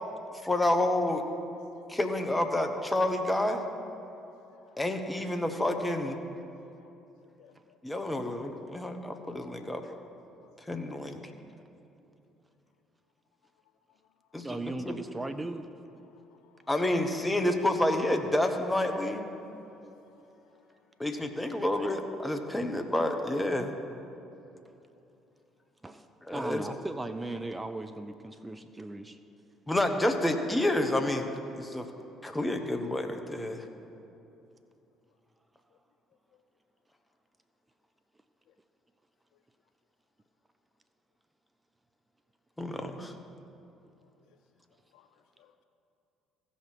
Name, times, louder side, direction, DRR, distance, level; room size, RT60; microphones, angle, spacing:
voice 1, 0.4-1.2 1.9-3.6 4.8-6.2 7.8-9.9 10.7-11.2 14.3-14.5 14.9-15.0 16.7-19.3 21.0-23.7 26.3-26.6 29.7-31.9 32.2-33.6 42.6-43.1, left 1 dB, 10° left, 5 dB, 1.2 m, -29 dB
voice 2, 7.4-7.8 10.4-10.5 10.7-10.8 16.2-16.5 19.4-19.8 44.9-45.1 45.4-45.5, left 11 dB, 65° left, 10 dB, 0.3 m, -61 dB
voice 3, 14.4-15.7 21.4-21.9 24.7-24.8 25.8-29.2, right 2 dB, 15° right, 9 dB, 0.5 m, -38 dB
16.0 x 5.7 x 4.6 m, 2.8 s
figure-of-eight pair, 50°, 0 cm